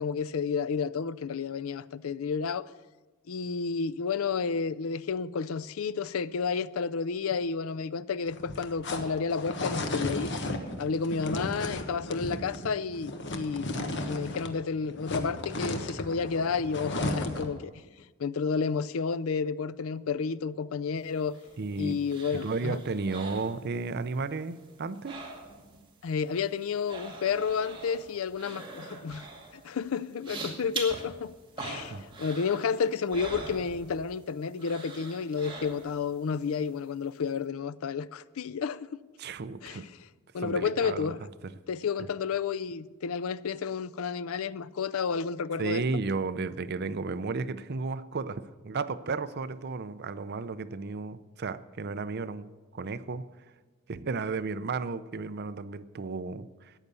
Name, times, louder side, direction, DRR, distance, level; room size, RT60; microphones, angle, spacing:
voice 1, 0.0-2.7 3.3-10.3 10.8-17.7 18.2-21.4 21.8-22.8 26.0-29.3 29.5-38.9 39.6-39.9 40.3-41.2 41.7-45.8, left 5 dB, 75° left, 0.4 m, -31 dB
sound 1, 8.3-14.6 14.8-17.6, left 1 dB, 60° left, 1.3 m, -34 dB
sound 2, 21.1-24.2 24.4-25.8 26.1-34.2 34.6-36.1 36.5-36.6, right 3 dB, 25° right, 2.2 m, -43 dB
voice 2, 21.6-22.0 22.3-25.2 31.8-32.0 39.2-39.9 40.4-41.2 41.4-41.5 45.6-53.3 53.9-56.7, right 4 dB, 50° right, 0.6 m, -33 dB
14.0 x 9.4 x 6.9 m
head